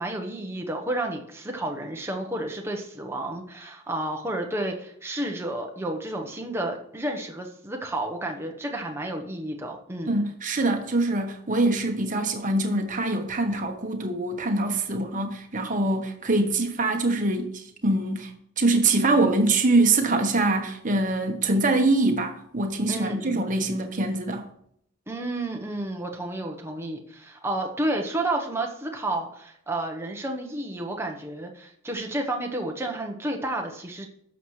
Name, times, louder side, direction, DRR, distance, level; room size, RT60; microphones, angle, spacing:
voice 1, 0.0-10.2 22.9-23.5 25.1-34.1, right 1 dB, 10° right, 1.0 m, -31 dB
voice 2, 10.1-24.5, right 2 dB, 35° right, 1.1 m, -24 dB
11.5 x 7.2 x 3.2 m
head